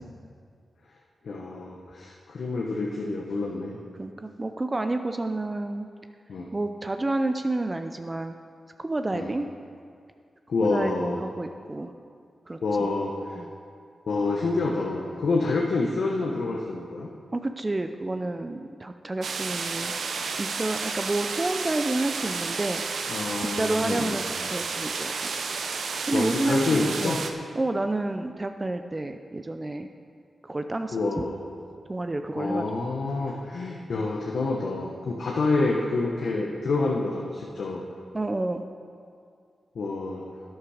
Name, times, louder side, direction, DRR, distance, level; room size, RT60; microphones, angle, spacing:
voice 1, 1.2-3.8 6.3-6.5 9.1-9.3 10.5-11.2 12.6-13.4 14.1-17.1 23.1-24.2 26.1-27.2 30.9-31.4 32.4-37.8 39.7-40.2, left 3 dB, 75° left, -1 dB, 1.1 m, -27 dB
voice 2, 4.0-5.9 6.5-8.3 8.8-9.5 10.6-11.9 12.5-12.9 13.4-13.5 17.3-19.9 20.4-22.8 23.6-25.3 26.1-27.2 27.5-29.9 30.4-31.2 31.9-32.9 38.1-38.7, right 2 dB, 30° right, 7 dB, 0.5 m, -30 dB
sound 1, 19.2-27.3, right 4 dB, 75° right, 0.7 m, -31 dB
12.0 x 9.7 x 5.0 m, 2.2 s
cardioid pair, 60°, 0 cm